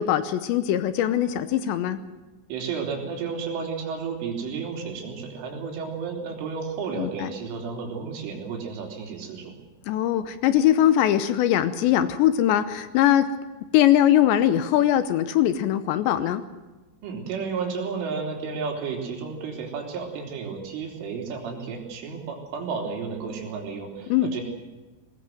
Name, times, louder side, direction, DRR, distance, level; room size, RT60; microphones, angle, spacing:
voice 1, 0.0-2.0 7.0-7.3 9.9-13.3 13.7-16.4 24.1-24.3, left 11 dB, 75° left, 12 dB, 2.7 m, -21 dB
voice 2, 2.5-9.6 17.0-24.4, right 5 dB, 70° right, 3 dB, 5.7 m, -32 dB
21.5 x 19.5 x 7.8 m, 1.2 s
omnidirectional pair, 5.8 m